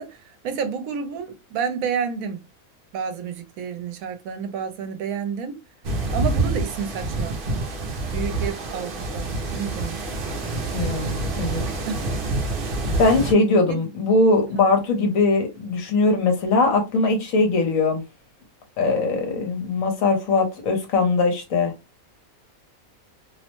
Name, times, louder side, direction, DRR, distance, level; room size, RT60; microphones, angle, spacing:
voice 1, 0.0-2.4 2.9-5.6 6.1-7.4 8.1-10.0 11.8-12.1 13.7-13.8, right 6 dB, 75° right, 1.0 m, -30 dB
sound 1, 5.8-13.3, right 2 dB, 55° right, 0.6 m, -27 dB
voice 2, 10.7-11.6 13.0-18.0 18.8-21.7, left 3 dB, 70° left, 1.2 m, -21 dB
2.7 x 2.1 x 2.9 m
omnidirectional pair, 1.5 m